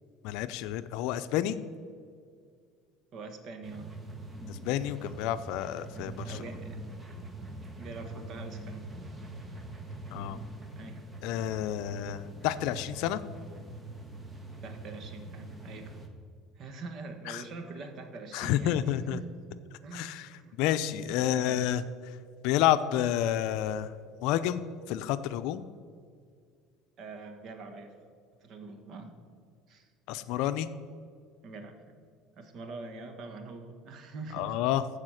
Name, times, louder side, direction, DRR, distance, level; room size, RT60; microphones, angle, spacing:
voice 1, 0.2-1.6 4.5-6.4 10.1-10.4 11.2-13.2 17.3-17.4 18.3-19.2 19.9-21.8 22.4-23.9 24.2-25.6 30.1-30.7 34.3-34.8, left 11 dB, 70° left, 12 dB, 0.5 m, -29 dB
voice 2, 3.1-3.9 6.2-6.8 7.7-8.9 10.7-11.0 14.6-15.9 16.6-18.8 19.1-19.2 19.8-20.6 20.8-21.7 27.0-27.9 28.4-29.1 29.7-29.9 31.4-32.0 32.3-34.6, right 3 dB, 50° right, 7 dB, 1.5 m, -44 dB
sound 1, 3.6-16.1, right 2 dB, 15° right, 1.3 m, -43 dB
14.5 x 4.9 x 6.5 m, 2.1 s
supercardioid pair, 105°, 0 cm